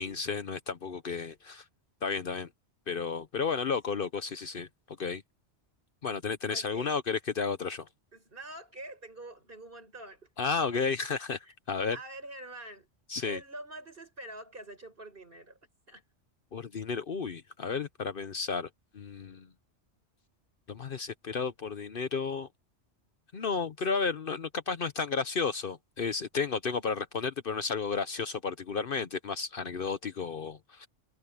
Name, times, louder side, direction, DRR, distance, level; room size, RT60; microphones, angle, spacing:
voice 1, 0.0-1.6 2.0-2.5 2.9-4.7 5.0-5.2 6.0-7.9 10.4-11.4 11.7-12.0 13.1-13.4 16.5-18.7 18.9-19.5 20.7-22.5 23.3-30.9, left 5 dB, 55° left, 1.0 m, -32 dB
voice 2, 6.5-6.9 8.1-10.2 11.4-11.5 11.9-12.9 13.2-15.6 15.9-16.0, right 2 dB, 50° right, 5.9 m, -45 dB
omnidirectional pair, 1.2 m